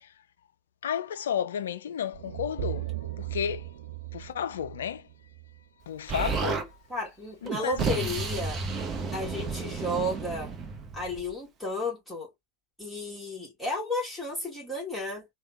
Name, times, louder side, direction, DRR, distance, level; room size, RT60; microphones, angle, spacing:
voice 1, 0.8-2.9 3.2-3.7 4.1-5.0 5.9-6.6 7.4-7.8, left 9 dB, 60° left, 0.3 m, -32 dB
sound 1, 2.1-6.3, right 16 dB, 60° right, 0.4 m, -38 dB
Explosion, 6.1-6.7 7.4-11.3, right 4 dB, 25° right, 0.9 m, -32 dB
voice 2, 6.9-8.6 9.1-10.5 10.9-12.3 12.8-15.2, left 1 dB, 5° left, 1.6 m, -33 dB
3.3 x 2.3 x 2.8 m
figure-of-eight pair, 90°, 0 cm